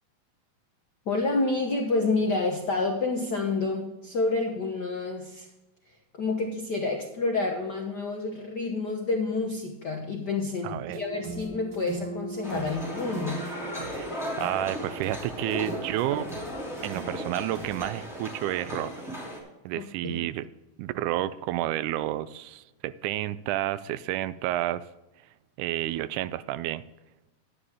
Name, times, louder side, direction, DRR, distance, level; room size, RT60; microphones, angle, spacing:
voice 1, 1.1-5.5 6.2-13.4 19.8-20.2, left 3 dB, 80° left, 2 dB, 0.9 m, -29 dB
voice 2, 10.6-11.0 13.9-14.1 14.4-16.3 16.8-18.9 19.7-20.5 20.8-24.8 25.6-26.8, right 14 dB, 90° right, 16 dB, 2.0 m, -30 dB
sound 1, 10.8-18.0, right 3 dB, 50° right, 1.4 m, -41 dB
sound 2, 12.4-19.4, equal, ahead, 2.5 m, -36 dB
11.0 x 9.7 x 3.5 m, 1.0 s
omnidirectional pair, 3.5 m